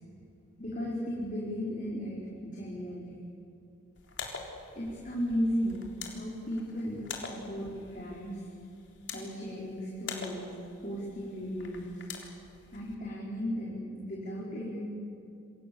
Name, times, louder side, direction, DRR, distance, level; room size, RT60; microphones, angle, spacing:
voice 1, 0.6-3.1 4.7-8.4 9.1-10.5 10.8-12.0 12.7-14.9, equal, 40° left, -5 dB, 5.0 m, -35 dB
sound 1, 4.0-12.9, left 5 dB, 65° left, 3.8 m, -45 dB
28.0 x 25.5 x 7.2 m, 2.6 s
head